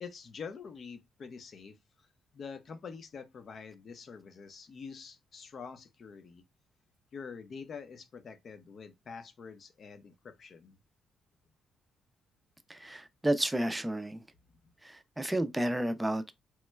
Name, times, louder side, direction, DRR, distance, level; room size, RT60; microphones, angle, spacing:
voice 1, 0.0-2.1 2.3-6.4 7.1-10.8 14.6-14.7, left 5 dB, 50° left, 0.6 m, -46 dB
voice 2, 12.7-14.2 14.8-16.3, right 1 dB, 10° right, 0.5 m, -31 dB
3.0 x 2.1 x 3.2 m
cardioid pair, 90°, 0 cm